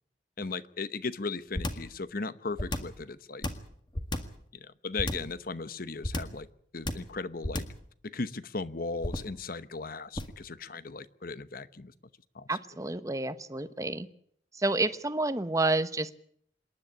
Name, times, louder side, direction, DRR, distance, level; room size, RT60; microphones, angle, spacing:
voice 1, 0.4-3.5 4.5-6.5 6.7-7.7 8.0-11.9 12.3-12.6, left 3 dB, 50° left, 15 dB, 0.9 m, -37 dB
sound 1, 1.5-1.9 2.6-3.0 3.4-4.4 5.0-5.4 6.0-6.4 6.9-7.2 7.4-7.8 9.0-9.4 10.2-10.4, left 1 dB, 25° left, 1.8 m, -33 dB
voice 2, 12.5-14.1 14.6-16.1, right 2 dB, 20° right, 12 dB, 1.0 m, -29 dB
27.0 x 11.0 x 10.0 m, 0.66 s
head